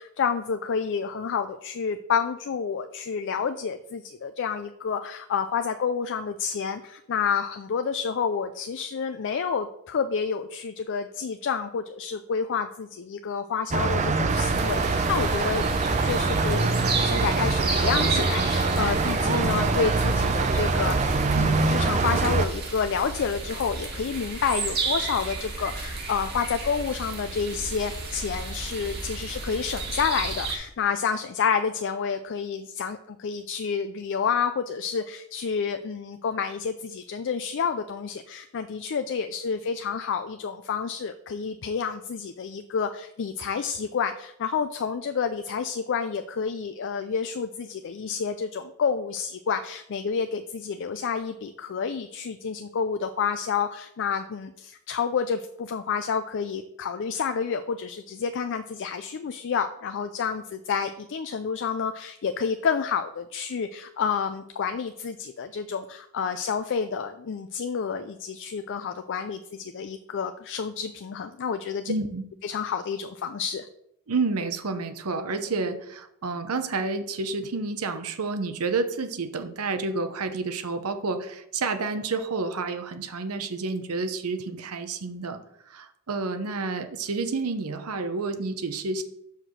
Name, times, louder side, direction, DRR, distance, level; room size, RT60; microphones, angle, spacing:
voice 1, 0.0-15.7 15.9-71.9 72.4-73.7, left 6 dB, 55° left, 8 dB, 0.4 m, -29 dB
sound 1, 13.7-22.5, right 3 dB, 30° right, 0.5 m, -24 dB
sound 2, 14.3-30.6, right 3 dB, 45° right, 1.7 m, -33 dB
voice 2, 71.9-72.3 74.1-85.4 85.7-89.0, right 3 dB, 75° right, 8 dB, 0.8 m, -29 dB
5.8 x 4.7 x 6.5 m, 0.75 s
head